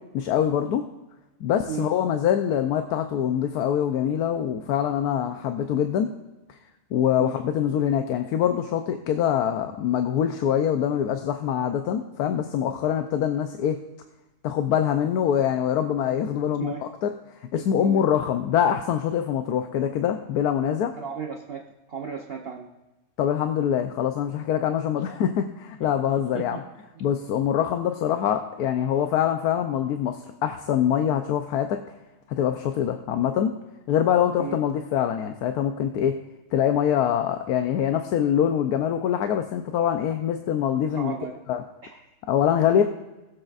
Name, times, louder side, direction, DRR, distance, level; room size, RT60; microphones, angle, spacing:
voice 1, 0.1-0.8 1.4-6.1 6.9-13.8 14.4-16.7 17.0-17.1 17.5-20.9 23.2-26.6 27.0-31.8 32.3-33.5 33.9-36.2 36.5-41.1 41.5-41.6 42.3-42.8, left 9 dB, 80° left, 6 dB, 1.2 m, -24 dB
voice 2, 17.6-18.0 20.9-22.7 25.8-25.9 26.3-26.6 34.4-34.6 41.0-41.4 41.8-42.1, right 7 dB, 50° right, 1 dB, 0.9 m, -35 dB
20.5 x 7.8 x 2.5 m, 1.1 s
omnidirectional pair, 1.7 m